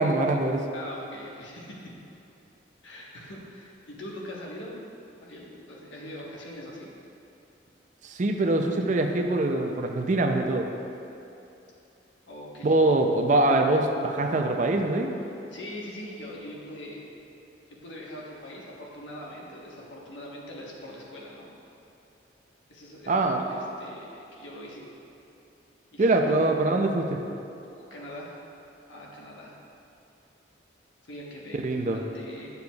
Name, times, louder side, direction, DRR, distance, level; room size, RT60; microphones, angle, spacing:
voice 1, 0.0-0.6 8.0-10.7 12.6-15.1 23.1-23.4 26.0-27.2 31.6-32.0, right 2 dB, 40° right, 4 dB, 0.4 m, -23 dB
voice 2, 0.7-1.8 2.8-4.8 5.2-6.9 12.3-13.0 15.5-17.1 17.7-21.5 22.7-24.9 25.9-26.2 27.7-28.4 28.9-29.6 31.1-32.5, left 1 dB, 75° left, -4 dB, 1.2 m, -42 dB
9.4 x 6.8 x 2.3 m, 2.8 s
head